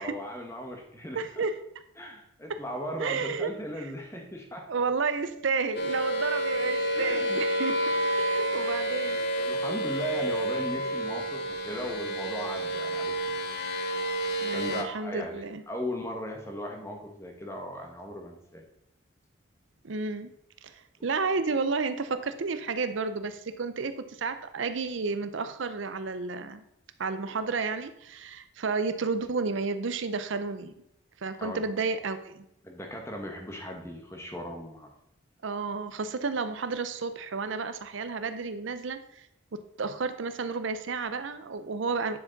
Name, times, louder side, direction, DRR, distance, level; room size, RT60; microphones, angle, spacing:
voice 1, 0.0-1.4 2.0-4.6 6.9-7.4 9.3-13.3 14.5-18.6 31.4-31.6 32.6-34.9, equal, 15° left, 2 dB, 1.3 m, -37 dB
voice 2, 1.1-1.6 2.5-2.6 3.0-3.5 3.8-3.9 4.7-9.3 9.7-9.8 14.4-15.6 19.8-20.3 20.6-26.6 27.0-30.7 31.2-32.5 35.4-39.3 39.5-42.2, right 4 dB, 65° right, 10 dB, 0.6 m, -31 dB
sound 1, 5.7-14.8, right 1 dB, 55° left, 1.1 m, -29 dB
9.5 x 7.0 x 4.0 m, 0.78 s
head